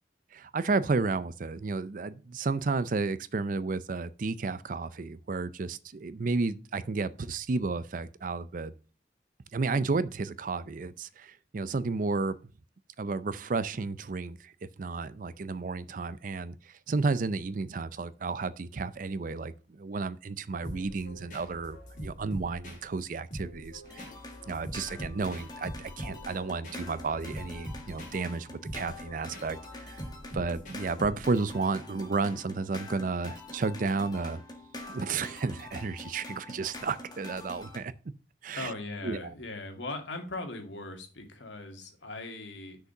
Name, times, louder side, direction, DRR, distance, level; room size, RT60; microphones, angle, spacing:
voice 1, 0.3-8.7 9.5-12.4 13.0-14.5 14.8-24.1 24.5-30.0 30.3-34.4 34.9-37.9 38.4-38.7 39.0-39.3, right 4 dB, 45° right, 0.5 m, -32 dB
sound 1, 20.6-31.5, equal, 45° left, 3.1 m, -44 dB
sound 2, 23.8-37.8, left 2 dB, 25° left, 1.6 m, -46 dB
voice 2, 38.5-42.8, left 2 dB, 85° left, 2.1 m, -39 dB
6.5 x 5.1 x 7.0 m
head